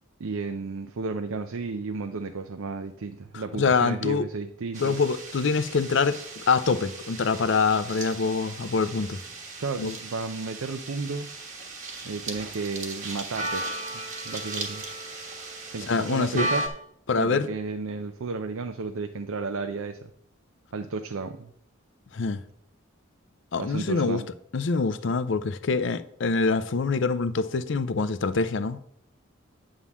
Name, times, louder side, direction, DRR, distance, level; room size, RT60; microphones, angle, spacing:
voice 1, 0.2-5.0 9.6-11.3 12.0-14.8 15.7-16.7 17.1-20.1 20.7-21.5 23.6-24.3, right 4 dB, 80° right, 0.5 m, -33 dB
voice 2, 3.6-4.2 4.8-9.2 9.8-9.9 15.9-16.5 17.1-17.5 22.1-22.4 23.5-24.2 24.5-28.8, left 4 dB, 60° left, 0.5 m, -25 dB
sound 1, 4.7-16.7, right 2 dB, 35° right, 1.4 m, -36 dB
9.7 x 3.7 x 7.2 m
head